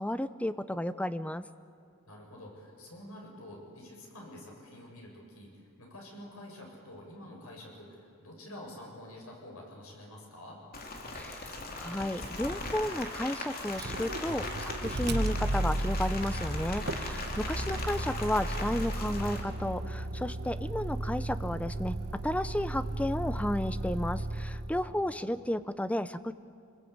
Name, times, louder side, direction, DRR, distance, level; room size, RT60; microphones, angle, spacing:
voice 1, 0.0-1.4 11.1-22.0 22.2-26.3, left 1 dB, 5° left, 13 dB, 0.6 m, -33 dB
voice 2, 2.1-10.6 17.3-17.8 24.8-25.3, left 1 dB, 90° left, 0 dB, 7.6 m, -48 dB
Rain, 10.7-19.4, left 3 dB, 45° left, 3.0 m, -39 dB
Motor vehicle (road), 13.7-24.9, right 1 dB, 50° right, 1.2 m, -34 dB
27.5 x 21.0 x 8.8 m, 2.4 s
head